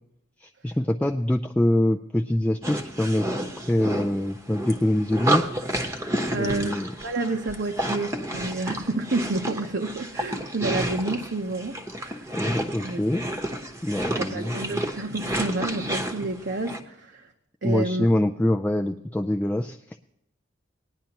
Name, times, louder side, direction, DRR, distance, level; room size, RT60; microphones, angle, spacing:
voice 1, 0.4-3.3 3.7-5.5 6.4-6.9 12.3-13.2 13.8-14.8 17.6-20.0, left 1 dB, 5° left, 2 dB, 0.3 m, -24 dB
sound 1, 2.6-16.8, right 1 dB, 15° right, 0.9 m, -31 dB
voice 2, 6.3-12.3 12.8-13.2 14.0-17.3 17.6-18.1, right 2 dB, 60° right, 3 dB, 0.8 m, -30 dB
18.5 x 10.5 x 2.9 m, 0.81 s
head